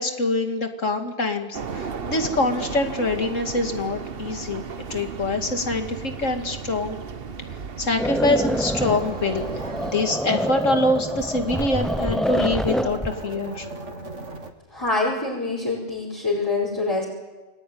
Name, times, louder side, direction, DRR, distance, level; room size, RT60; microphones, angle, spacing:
voice 1, 0.0-4.6 4.9-7.0 7.8-9.4 9.8-13.7, left 2 dB, 70° left, 5 dB, 2.8 m, -25 dB
sound 1, 1.5-9.9, right 6 dB, 50° right, 1.2 m, -35 dB
sound 2, 8.0-13.2, equal, ahead, 0.5 m, -27 dB
sound 3, 8.1-14.5, right 2 dB, 65° right, 2.2 m, -37 dB
voice 2, 14.7-17.0, left 3 dB, 15° left, -4 dB, 5.2 m, -25 dB
28.5 x 20.5 x 9.5 m, 1.2 s
omnidirectional pair, 1.3 m